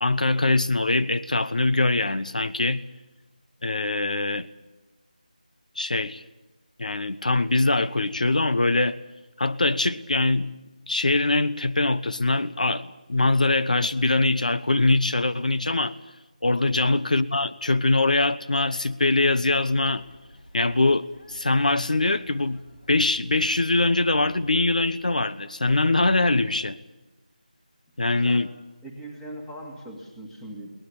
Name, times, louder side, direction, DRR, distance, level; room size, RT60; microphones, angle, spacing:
voice 1, 0.0-2.8 3.6-4.5 5.7-6.2 6.8-9.0 9.4-10.5 10.9-16.0 16.4-20.0 20.5-22.6 22.9-26.8 28.0-28.5, left 2 dB, 65° left, 13 dB, 1.1 m, -23 dB
sound 1, 19.7-24.9, equal, 85° left, 7.0 m, -51 dB
voice 2, 28.0-28.4 28.8-30.7, right 1 dB, 5° left, 1 dB, 2.0 m, -40 dB
22.5 x 19.0 x 8.7 m, 1.1 s
figure-of-eight pair, 170°, 4 cm